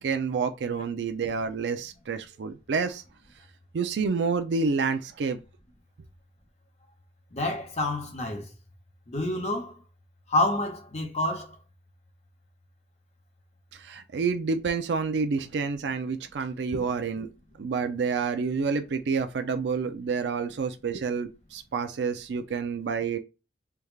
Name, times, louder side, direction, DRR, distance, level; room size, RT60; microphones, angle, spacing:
voice 1, 0.0-3.0 3.7-5.4 13.8-17.3 17.6-23.2, right 5 dB, 75° right, 0.4 m, -28 dB
voice 2, 7.3-8.5 9.1-9.8 10.3-11.5, left 1 dB, 40° left, 0.8 m, -28 dB
3.4 x 2.3 x 3.2 m
head